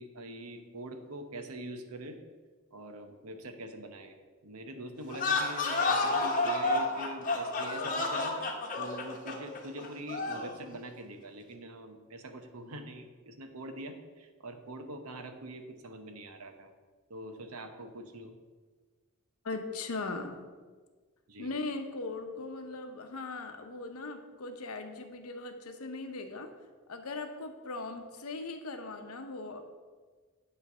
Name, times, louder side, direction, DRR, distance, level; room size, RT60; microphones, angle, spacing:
voice 1, 0.0-2.2 2.7-8.5 8.8-16.7 17.1-18.3 21.3-21.5, right 1 dB, 85° right, 6 dB, 0.9 m, -44 dB
sound 1, 5.1-10.5, left 3 dB, 40° left, 1.0 m, -30 dB
voice 2, 19.4-20.4 21.4-26.5 26.9-29.6, left 3 dB, 85° left, 6 dB, 0.8 m, -39 dB
9.6 x 3.3 x 6.0 m, 1.4 s
head